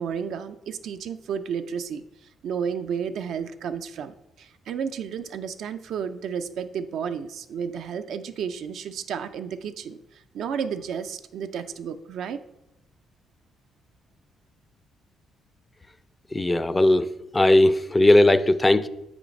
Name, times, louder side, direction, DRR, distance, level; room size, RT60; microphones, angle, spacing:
voice 1, 0.0-2.0 2.4-12.4, right 7 dB, 75° right, 8 dB, 0.4 m, -32 dB
voice 2, 16.3-17.1 17.3-18.9, left 1 dB, 15° left, 12 dB, 0.3 m, -18 dB
7.0 x 3.2 x 5.1 m, 0.89 s
cardioid pair, 90°, 0 cm